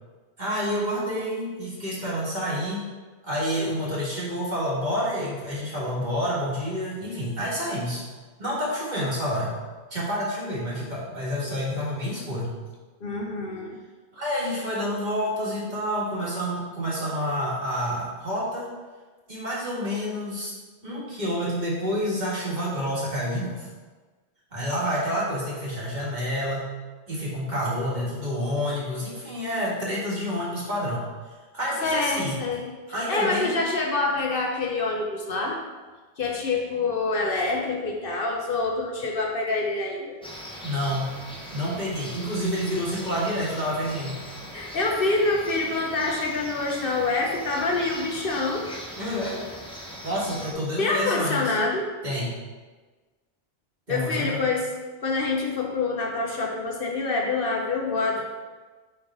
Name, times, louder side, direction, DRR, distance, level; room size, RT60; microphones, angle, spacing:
voice 1, 0.4-2.8 3.2-8.0 8.4-9.5 9.9-12.5 14.1-18.7 19.3-20.5 20.8-23.7 24.5-26.7 27.1-31.1 31.5-32.4 32.9-33.6 40.6-41.2 41.5-44.2 49.0-49.4 50.0-51.5 52.0-52.3 53.9-54.4, equal, 45° right, -6 dB, 1.8 m, -28 dB
voice 2, 13.0-13.8 31.8-32.7 33.1-35.6 36.2-40.2 44.5-48.6 50.8-51.8 53.9-54.7 55.0-58.2, left 3 dB, 60° left, 0 dB, 0.9 m, -26 dB
sound 1, 40.2-50.5, equal, 5° left, 0.7 m, -40 dB
5.7 x 3.6 x 4.7 m, 1.3 s
omnidirectional pair, 1.1 m